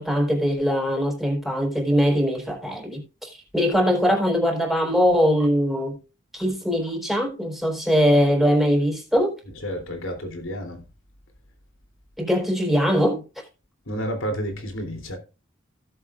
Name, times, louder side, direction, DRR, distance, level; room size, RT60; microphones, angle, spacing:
voice 1, 0.0-6.0 6.3-9.4 12.2-13.2, equal, ahead, 4.1 m, -21 dB
voice 2, 9.6-10.9 13.9-15.2, equal, 85° left, 3.3 m, -30 dB
17.0 x 7.7 x 2.5 m
head